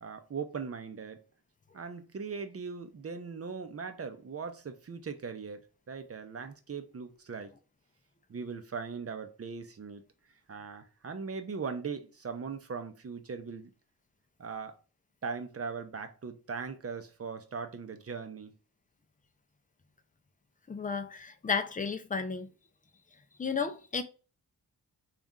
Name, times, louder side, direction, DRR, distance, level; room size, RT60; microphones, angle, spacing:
voice 1, 0.0-1.2 1.7-5.6 5.9-7.5 8.3-10.0 10.5-13.7 14.4-14.8 15.2-18.5, right 5 dB, 35° right, 0.6 m, -39 dB
voice 2, 20.7-22.5 23.4-24.0, left 5 dB, 20° left, 0.4 m, -33 dB
4.2 x 2.5 x 3.6 m
wide cardioid pair, 130°, 40 cm